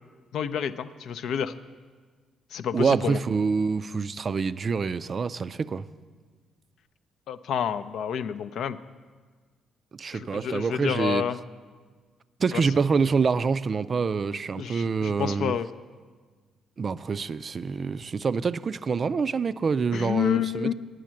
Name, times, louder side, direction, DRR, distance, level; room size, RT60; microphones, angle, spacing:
voice 1, 0.3-1.5 2.5-3.2 7.3-8.8 10.1-11.4 12.5-12.6 14.6-15.7 19.9-20.7, left 8 dB, 65° left, 11 dB, 0.4 m, -29 dB
voice 2, 2.7-5.9 9.9-11.3 12.4-15.5 16.8-20.7, right 5 dB, 45° right, 14 dB, 0.3 m, -26 dB
9.1 x 6.3 x 7.5 m, 1.5 s
hypercardioid pair, 45°, 0 cm